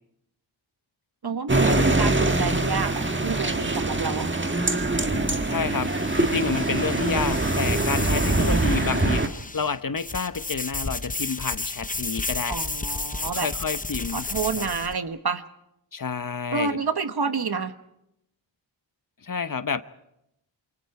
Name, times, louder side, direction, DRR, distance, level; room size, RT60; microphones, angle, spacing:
voice 1, 1.2-4.3 12.5-13.5 14.1-15.5 16.5-17.7, right 5 dB, 50° right, 10 dB, 1.3 m, -29 dB
sound 1, 1.5-9.3, right 2 dB, 25° right, 1.6 m, -23 dB
voice 2, 5.1-5.9 6.2-12.6 13.3-14.3 14.5-14.7 15.9-16.8 19.2-19.8, left 5 dB, 45° left, 12 dB, 0.9 m, -29 dB
sound 2, 5.6-14.9, left 3 dB, 15° left, 0.8 m, -33 dB
28.5 x 24.0 x 4.8 m, 0.81 s
wide cardioid pair, 65°, 47 cm